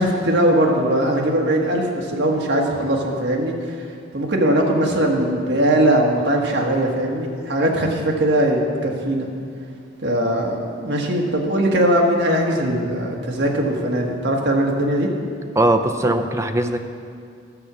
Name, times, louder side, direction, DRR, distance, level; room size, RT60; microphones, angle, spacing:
voice 1, 0.0-3.7 4.1-9.3 10.0-15.1 16.0-16.2, right 1 dB, 60° right, 0 dB, 1.6 m, -20 dB
voice 2, 15.6-16.8, right 1 dB, 15° right, 6 dB, 0.5 m, -19 dB
12.5 x 7.3 x 6.2 m, 2.3 s
head